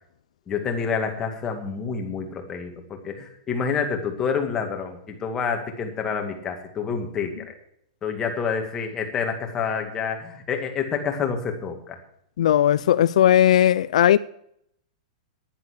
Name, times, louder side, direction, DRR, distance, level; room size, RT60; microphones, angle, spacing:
voice 1, 0.5-7.5 8.0-12.0, left 6 dB, 15° left, 2.2 m, -28 dB
voice 2, 12.4-14.2, left 11 dB, 70° left, 0.5 m, -17 dB
11.0 x 11.0 x 6.5 m
supercardioid pair, 165°, 4 cm